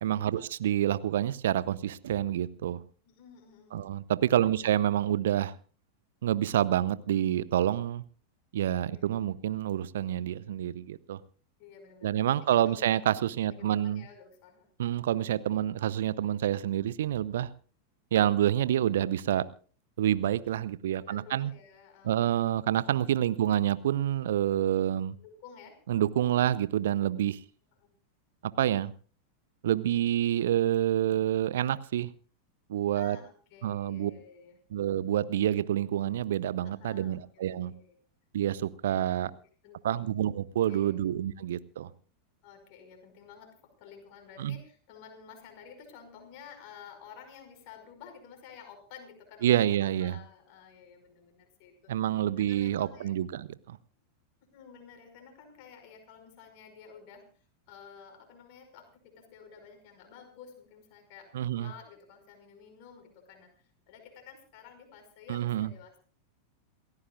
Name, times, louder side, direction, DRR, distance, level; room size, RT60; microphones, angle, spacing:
voice 1, 0.0-2.8 3.7-5.5 6.2-8.0 8.5-11.2 12.0-14.0 14.8-17.5 18.1-19.4 20.0-21.5 22.0-25.1 25.9-27.4 28.4-28.9 29.6-32.1 32.7-33.2 33.6-34.1 34.7-37.7 38.3-39.3 39.8-41.9 44.4-44.5 49.4-50.2 51.9-53.8 61.3-61.7 65.3-65.7, right 11 dB, 60° right, 18 dB, 0.7 m, -28 dB
voice 2, 3.1-3.9 4.3-4.7 8.9-9.1 11.6-13.0 13.5-14.7 21.0-23.0 25.2-25.8 27.8-27.9 32.9-34.6 36.6-38.0 39.3-40.1 40.6-41.0 42.4-53.1 54.5-66.0, left 7 dB, 45° left, 4 dB, 5.4 m, -52 dB
28.0 x 14.5 x 2.4 m, 0.39 s
figure-of-eight pair, 90°, 0 cm